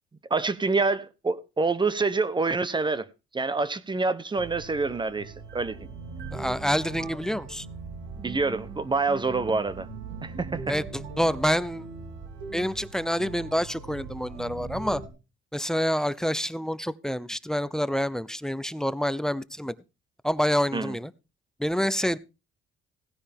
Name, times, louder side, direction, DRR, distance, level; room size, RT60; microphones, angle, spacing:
voice 1, 0.3-3.0 3.3-5.8 8.2-9.9 10.2-10.6 20.7-21.0, right 3 dB, 25° right, 0.9 m, -26 dB
sound 1, 4.3-15.1, right 4 dB, 85° right, 3.0 m, -40 dB
voice 2, 6.3-7.7 10.7-11.8 12.5-15.0 15.5-19.7 20.2-21.1 21.6-22.2, equal, 5° left, 0.6 m, -27 dB
17.0 x 9.9 x 3.6 m
cardioid pair, 90°, 20 cm